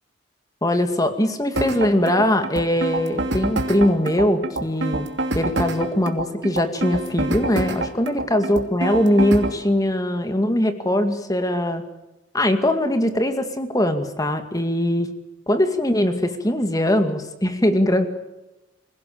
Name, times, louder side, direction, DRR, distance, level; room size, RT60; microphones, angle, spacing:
voice 1, 0.6-5.1 5.3-11.8 12.3-15.1 15.5-18.1, left 1 dB, 20° left, 7 dB, 2.2 m, -21 dB
sound 1, 1.6-9.6, right 2 dB, 75° right, 2.8 m, -26 dB
26.0 x 16.5 x 8.6 m, 0.98 s
head